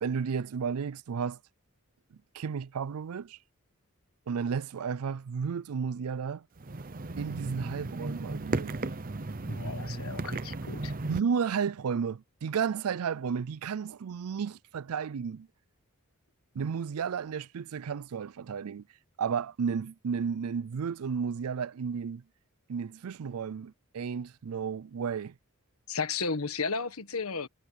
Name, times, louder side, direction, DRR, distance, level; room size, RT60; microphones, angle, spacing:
voice 1, 0.0-1.4 2.1-3.4 4.3-6.5 7.2-8.8 11.1-15.5 16.5-18.8 19.2-22.2 22.7-25.3, right 6 dB, 85° right, 0.4 m, -33 dB
sound 1, 6.6-11.2, right 2 dB, 40° right, 0.8 m, -35 dB
voice 2, 9.5-10.9 25.9-27.5, left 4 dB, 80° left, 1.4 m, -34 dB
head